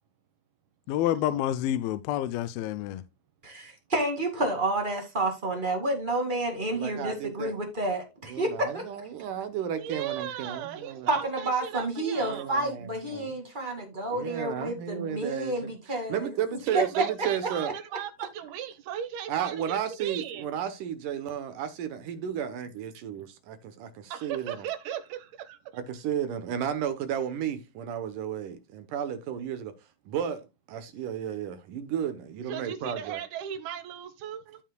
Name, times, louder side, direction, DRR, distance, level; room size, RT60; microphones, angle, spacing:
voice 1, 0.9-3.0, left 12 dB, 85° left, 2.4 m, -28 dB
voice 2, 3.4-8.8 11.1-16.3 16.7-16.8, right 2 dB, 20° right, 1.5 m, -30 dB
voice 3, 6.7-7.6 8.3-11.2 12.2-13.4 14.1-15.7 16.1-17.7 19.3-24.7 25.7-29.7 30.1-33.2 34.5-34.6, right 9 dB, 70° right, 2.4 m, -33 dB
voice 4, 9.8-12.5 16.7-20.5 24.1-25.6 32.5-34.4, right 10 dB, 90° right, 3.1 m, -36 dB
14.5 x 5.5 x 2.2 m
omnidirectional pair, 4.2 m